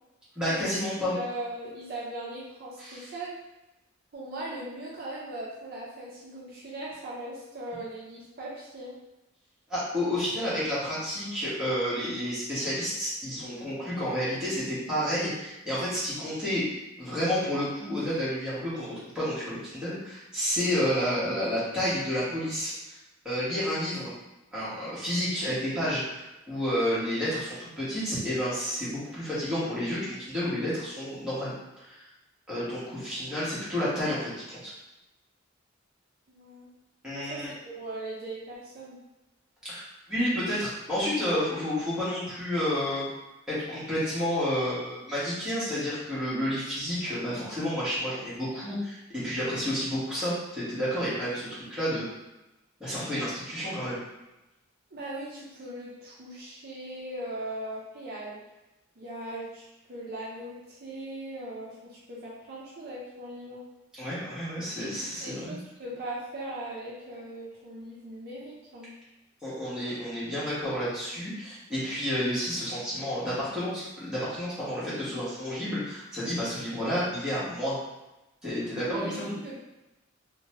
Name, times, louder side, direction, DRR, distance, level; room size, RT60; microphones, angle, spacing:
voice 1, 0.3-1.1 2.8-3.1 9.7-16.6 17.0-23.0 23.2-24.1 24.5-32.1 32.5-34.7 37.0-37.5 39.6-43.1 43.5-52.0 52.8-54.0 63.9-65.6 69.4-77.8 78.4-79.4, equal, 5° right, -11 dB, 1.1 m, -30 dB
voice 2, 1.0-3.3 4.1-8.9 36.3-36.7 37.1-39.0 54.9-58.4 59.0-63.6 64.8-64.9 65.2-68.9 78.8-79.6, right 1 dB, 50° right, -6 dB, 0.5 m, -39 dB
2.8 x 2.2 x 2.8 m, 0.97 s
head